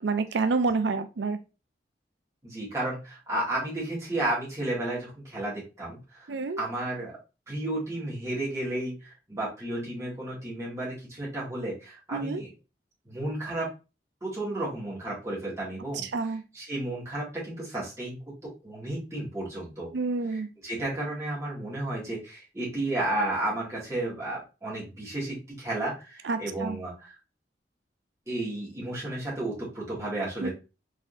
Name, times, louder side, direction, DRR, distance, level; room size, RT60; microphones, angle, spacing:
voice 1, 0.0-1.4 6.3-6.6 12.1-12.4 16.1-16.4 19.9-20.5 26.2-26.8 30.4-30.5, right 4 dB, 90° right, 10 dB, 0.5 m, -28 dB
voice 2, 2.4-6.3 6.6-7.2 7.5-12.5 13.1-13.7 14.2-16.1 16.5-19.9 20.3-27.1 28.3-30.5, right 1 dB, 15° right, -7 dB, 2.1 m, -33 dB
4.1 x 3.7 x 2.5 m, 0.29 s
head